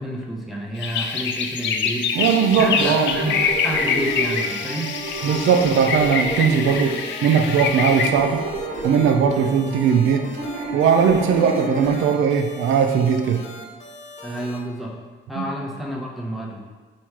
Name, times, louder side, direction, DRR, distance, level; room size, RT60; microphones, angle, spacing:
voice 1, 0.0-2.0 2.6-4.9 14.2-14.9 15.3-16.6, right 1 dB, ahead, -2 dB, 0.8 m, -29 dB
sound 1, 0.8-8.1, left 6 dB, 70° left, 0.4 m, -25 dB
sound 2, 2.1-12.0, right 3 dB, 50° right, 1.1 m, -31 dB
voice 2, 2.2-3.1 5.2-8.4 8.8-10.3 10.7-13.4 15.4-15.5, right 6 dB, 80° right, 5 dB, 0.4 m, -19 dB
sound 3, 2.5-14.6, left 2 dB, 35° left, 1.0 m, -41 dB
4.3 x 2.3 x 4.6 m, 1.5 s
cardioid pair, 90°, 20 cm